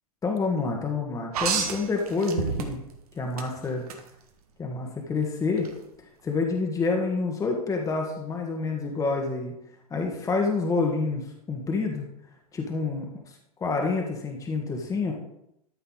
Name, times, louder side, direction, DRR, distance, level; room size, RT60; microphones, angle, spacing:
voice 1, 0.2-2.8 3.1-3.8 4.6-5.7 6.2-9.5 9.9-12.1 12.5-13.3 13.6-15.1, left 4 dB, 15° left, 1 dB, 1.5 m, -28 dB
sound 1, 1.3-3.0 3.4-4.0 5.6-5.7, right 6 dB, 70° right, 1.6 m, -29 dB
13.0 x 5.6 x 4.0 m, 0.81 s
hypercardioid pair, 110°, 20 cm